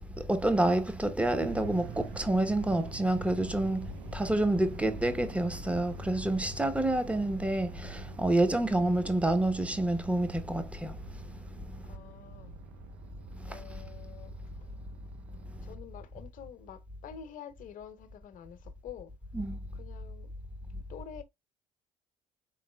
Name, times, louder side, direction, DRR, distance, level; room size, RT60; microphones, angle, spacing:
voice 1, 0.1-11.0 13.4-13.6 19.3-19.6, right 1 dB, 10° right, 0.8 m, -28 dB
sound 1, 1.4-15.7, right 3 dB, 75° right, 0.7 m, -47 dB
voice 2, 11.8-12.6 13.5-14.3 15.6-19.1 19.7-20.3 20.9-21.2, left 8 dB, 55° left, 0.8 m, -47 dB
3.9 x 3.5 x 2.2 m
hypercardioid pair, 65°, 16 cm